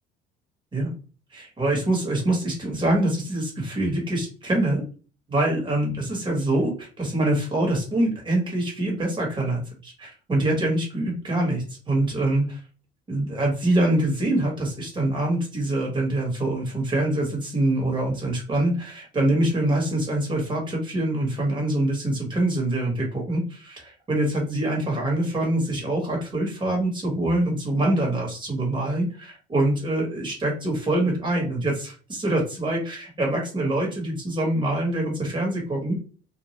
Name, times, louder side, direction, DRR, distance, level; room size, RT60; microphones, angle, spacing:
voice 1, 1.3-4.8 5.3-12.6 13.1-36.0, right 1 dB, 30° right, -1 dB, 1.4 m, -25 dB
2.6 x 2.3 x 3.1 m, 0.37 s
cardioid pair, 110°, 17 cm